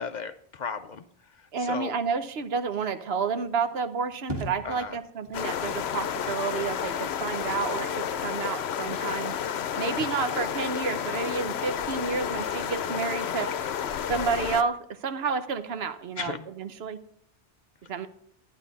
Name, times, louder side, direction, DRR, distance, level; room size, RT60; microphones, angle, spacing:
voice 1, 0.0-1.9 4.6-5.0 9.9-10.2 16.2-16.5, left 5 dB, 55° left, 10 dB, 0.6 m, -36 dB
voice 2, 1.5-9.4 9.8-13.7 14.1-17.0 17.9-18.1, right 5 dB, 75° right, 10 dB, 1.0 m, -30 dB
sound 1, 4.3-10.5, equal, 25° right, 1.6 m, -44 dB
sound 2, 5.3-14.6, left 8 dB, 80° left, 0.9 m, -31 dB
11.0 x 10.5 x 4.0 m, 0.65 s
omnidirectional pair, 1.1 m